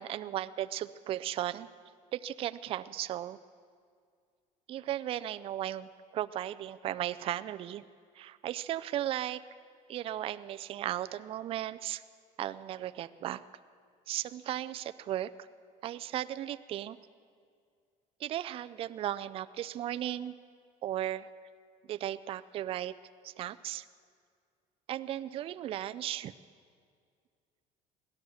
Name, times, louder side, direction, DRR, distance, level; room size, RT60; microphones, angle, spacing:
voice 1, 0.0-1.7 2.1-3.4 4.7-7.8 8.2-9.4 9.9-12.0 12.4-13.4 14.1-15.3 15.8-17.0 18.2-20.3 20.8-21.3 21.9-22.9 23.2-23.8 24.9-26.3, right 12 dB, 35° right, 12 dB, 0.4 m, -36 dB
17.0 x 12.5 x 6.4 m, 2.2 s
cardioid pair, 155°, 16 cm